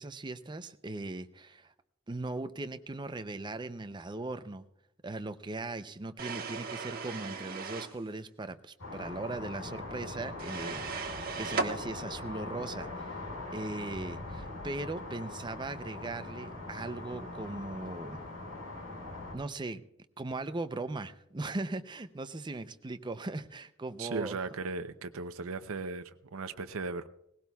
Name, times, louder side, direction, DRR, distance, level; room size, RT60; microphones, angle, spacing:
voice 1, 0.0-1.7 2.1-4.6 5.0-13.2 13.5-18.2 19.3-19.8 20.2-24.4, right 2 dB, 20° right, 10 dB, 0.6 m, -39 dB
sound 1, 6.2-8.0 10.4-11.7, right 4 dB, 45° right, 1.4 m, -36 dB
sound 2, 8.8-19.3, left 2 dB, 80° left, 5.0 m, -42 dB
voice 2, 24.0-27.1, right 4 dB, 80° right, 10 dB, 0.7 m, -37 dB
19.0 x 16.5 x 2.3 m, 0.83 s
head